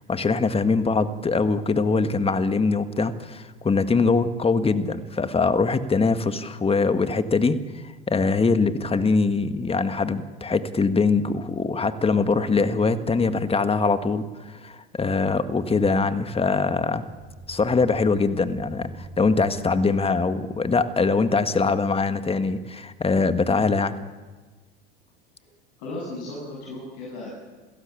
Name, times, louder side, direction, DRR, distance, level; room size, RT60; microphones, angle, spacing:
voice 1, 0.1-17.0 17.5-24.0, left 4 dB, 20° left, 11 dB, 1.8 m, -23 dB
sound 1, 17.0-22.1, right 2 dB, 30° right, 7.5 m, -44 dB
voice 2, 25.8-27.3, left 2 dB, 65° left, -3 dB, 7.8 m, -35 dB
27.0 x 16.5 x 8.5 m, 1.3 s
hypercardioid pair, 85°, 30 cm